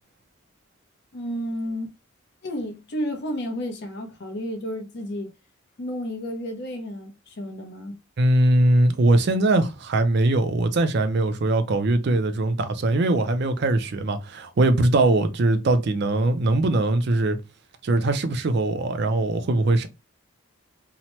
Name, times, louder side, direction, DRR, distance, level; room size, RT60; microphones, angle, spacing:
voice 1, 1.1-1.9 2.4-5.3 5.8-8.0, equal, 55° left, 0.7 m, -31 dB
voice 2, 8.2-17.4 17.8-19.9, right 2 dB, 50° right, 0.4 m, -21 dB
2.8 x 2.1 x 2.9 m
head